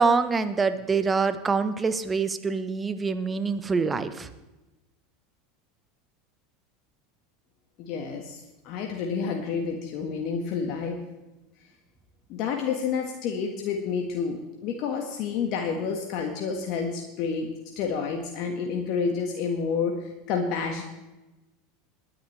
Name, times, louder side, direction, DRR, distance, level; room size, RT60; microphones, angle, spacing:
voice 1, 0.0-4.3, right 4 dB, 20° right, 11 dB, 1.1 m, -25 dB
voice 2, 7.8-11.0 12.3-20.8, left 5 dB, 55° left, 2 dB, 1.7 m, -29 dB
21.5 x 10.5 x 3.4 m, 1.0 s
hypercardioid pair, 90°, 0 cm